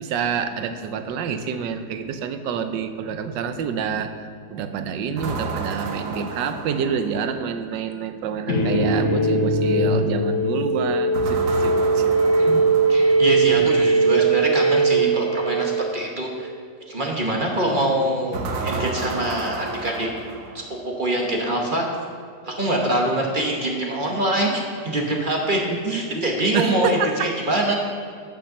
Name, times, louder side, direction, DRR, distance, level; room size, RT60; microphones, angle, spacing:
voice 1, 0.0-12.4 13.5-13.9 25.8-26.0 26.5-27.3, right 6 dB, 85° right, 8 dB, 1.3 m, -28 dB
sound 1, 5.2-7.5 11.1-13.7 18.3-20.9, right 3 dB, 60° right, 1.0 m, -31 dB
sound 2, 8.5-16.4, right 3 dB, 50° left, 1.4 m, -20 dB
voice 2, 12.4-16.5 16.9-20.1 20.7-21.8 22.4-27.7, right 1 dB, 35° right, 0 dB, 0.9 m, -24 dB
8.6 x 6.4 x 6.4 m, 2.2 s
omnidirectional pair, 1.9 m